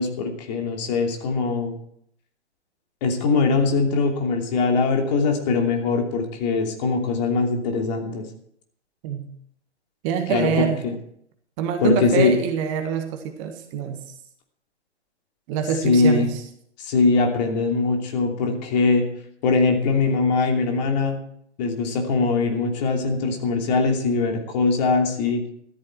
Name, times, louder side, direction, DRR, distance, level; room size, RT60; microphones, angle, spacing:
voice 1, 0.0-1.7 3.0-8.3 10.3-10.9 11.8-12.3 15.8-16.3 16.8-19.1 19.4-21.2 21.6-25.4, left 4 dB, 35° left, 3 dB, 2.9 m, -21 dB
voice 2, 10.0-10.8 11.6-14.0 15.5-16.3, right 8 dB, 30° right, 6 dB, 1.7 m, -25 dB
13.5 x 13.0 x 4.6 m, 0.67 s
figure-of-eight pair, 125°, 35 cm